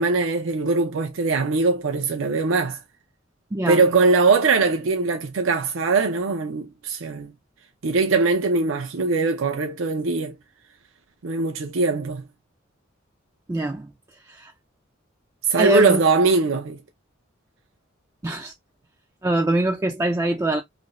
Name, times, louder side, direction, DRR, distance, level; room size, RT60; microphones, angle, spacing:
voice 1, 0.0-2.8 3.7-7.3 7.8-10.3 11.2-12.3 15.5-16.8, right 3 dB, 75° right, 0.5 m, -21 dB
voice 2, 3.5-3.8 13.5-13.9 14.3-14.5 15.6-16.0 18.2-18.5 19.2-20.6, right 1 dB, 15° right, 0.3 m, -23 dB
2.7 x 2.6 x 3.0 m
head